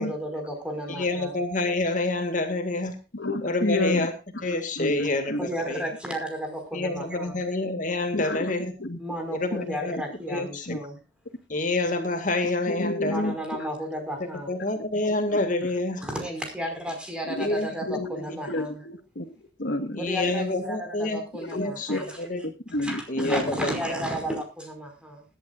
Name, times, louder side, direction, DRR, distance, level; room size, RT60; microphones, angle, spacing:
voice 1, 0.0-1.3 5.4-7.4 9.0-11.0 13.1-14.5 16.0-18.8 20.0-22.3 22.8-25.2, equal, 5° right, 3 dB, 5.2 m, -33 dB
voice 2, 0.9-3.0 3.4-4.1 4.4-5.8 6.7-8.7 9.3-10.0 10.3-10.7 11.5-13.2 14.5-16.0 17.4-17.7 19.9-21.2 21.5-21.9 22.2-22.4 23.1-23.7, left 2 dB, 50° left, 6 dB, 2.1 m, -27 dB
voice 3, 3.1-4.1 4.8-5.5 8.1-8.5 8.8-9.0 10.3-10.4 10.7-10.8 12.7-13.3 17.3-17.5 17.8-18.2 18.5-19.3 19.6-20.0 21.3-22.1 22.4-23.4, left 1 dB, 80° left, 8 dB, 1.6 m, -30 dB
20.5 x 11.5 x 2.5 m, 0.30 s
head